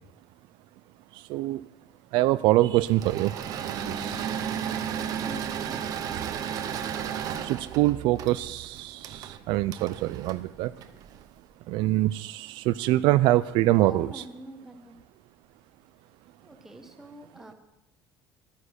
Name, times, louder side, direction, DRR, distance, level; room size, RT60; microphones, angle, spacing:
voice 1, 1.1-1.6 2.1-3.3 3.6-4.4 6.6-6.7 7.4-10.7 11.7-14.2, right 16 dB, 65° right, 15 dB, 0.4 m, -25 dB
Engine / Mechanisms, 2.8-11.2, right 8 dB, 45° right, 0.8 m, -33 dB
voice 2, 5.2-5.9 13.8-15.0 16.4-17.5, right 1 dB, 5° right, 5 dB, 1.1 m, -45 dB
12.5 x 9.6 x 6.4 m, 0.96 s
cardioid pair, 175°, 9 cm